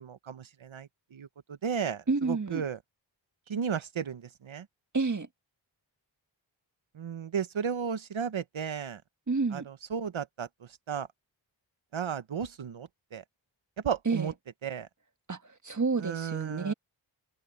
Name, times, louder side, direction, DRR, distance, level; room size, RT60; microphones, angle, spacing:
voice 1, 0.0-2.8 3.5-4.7 6.9-9.0 9.5-11.1 11.9-13.2 13.8-14.3 14.6-14.9 16.0-16.7, right 7 dB, 85° right, 1.1 m, -34 dB
voice 2, 2.1-2.6 4.9-5.3 9.3-9.7 14.0-14.3 15.3-16.7, right 4 dB, 40° right, 1.7 m, -29 dB
wide cardioid pair, 55°, 46 cm